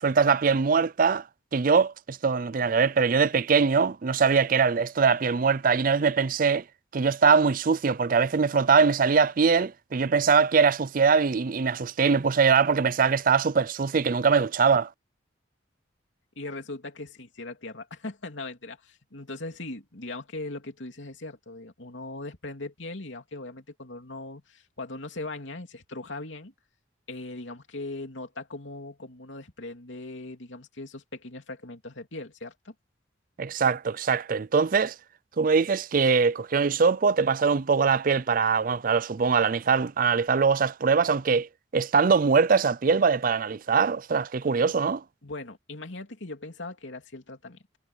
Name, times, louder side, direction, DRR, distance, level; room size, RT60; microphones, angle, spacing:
voice 1, 0.0-1.2 1.5-6.6 6.9-14.9 33.4-34.9 35.4-41.5 41.7-45.0, right 5 dB, 45° right, 0.5 m, -22 dB
voice 2, 16.4-26.5 27.1-32.7 45.2-47.6, left 2 dB, 80° left, 3.0 m, -39 dB
head